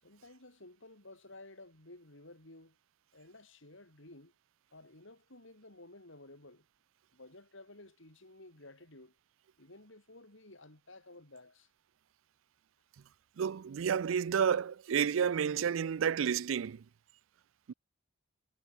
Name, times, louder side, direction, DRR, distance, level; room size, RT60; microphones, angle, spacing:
voice 1, 0.0-2.8 3.1-4.3 4.7-6.7 7.1-9.2 9.6-11.7, left 2 dB, 65° left, 6.0 m, -54 dB
voice 2, 13.4-16.8 17.7-17.8, right 7 dB, 70° right, 0.4 m, -30 dB
head